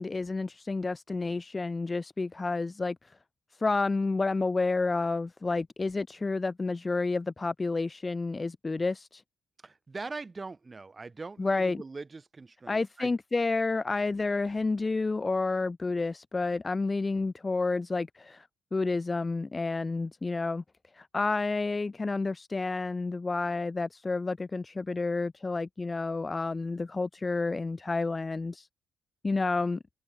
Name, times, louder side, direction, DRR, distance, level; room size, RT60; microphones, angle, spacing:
voice 1, 0.0-3.1 3.6-9.2 11.4-11.8 12.7-20.6 20.9-28.7 29.2-29.8, left 3 dB, 25° left, 1.1 m, -30 dB
voice 2, 9.6-13.1, right 3 dB, 25° right, 2.1 m, -41 dB
cardioid pair, 90°, 0 cm